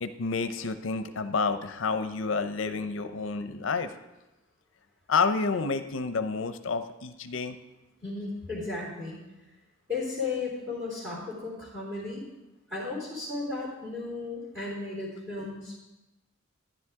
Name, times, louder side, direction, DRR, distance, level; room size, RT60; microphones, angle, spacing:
voice 1, 0.0-4.0 5.1-7.6, left 4 dB, 75° left, 9 dB, 0.6 m, -29 dB
voice 2, 8.0-9.2 9.9-12.2 12.7-15.8, left 3 dB, 10° right, -5 dB, 3.4 m, -35 dB
12.5 x 10.0 x 3.6 m, 1.0 s
head